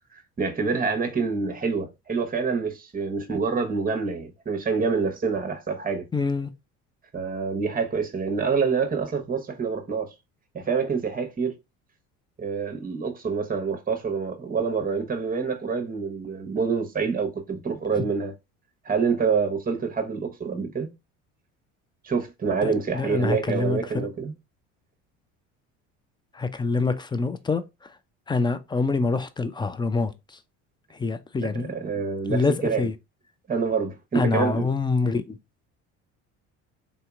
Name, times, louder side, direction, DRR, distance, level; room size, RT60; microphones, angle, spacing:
voice 1, 0.1-6.0 7.1-10.1 10.5-11.5 12.4-18.3 18.8-20.9 22.0-24.3 31.5-32.9 33.5-34.7, right 5 dB, 25° right, 1.1 m, -27 dB
voice 2, 6.1-6.5 18.0-18.1 22.6-23.8 26.3-27.6 28.3-30.1 30.9-31.7 32.3-32.9 34.1-35.4, left 4 dB, 15° left, 0.4 m, -25 dB
3.9 x 2.8 x 2.4 m
hypercardioid pair, 75°, 35 cm